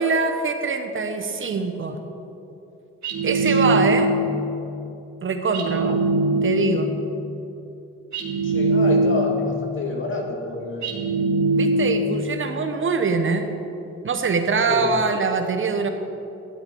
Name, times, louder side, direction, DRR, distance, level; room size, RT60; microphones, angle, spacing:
voice 1, 0.0-2.0 3.2-4.1 5.2-6.0 6.4-6.9 11.5-13.5 14.0-15.9, right 4 dB, 40° right, 5 dB, 1.0 m, -23 dB
sound 1, 3.0-4.4 5.5-6.9 8.1-9.5 10.8-12.2, right 2 dB, 65° right, 2.2 m, -21 dB
voice 2, 3.4-3.9 8.4-11.0 14.7-14.9, left 2 dB, 40° left, 1 dB, 1.9 m, -29 dB
12.0 x 10.0 x 4.6 m, 2.9 s
cardioid pair, 90°, 30 cm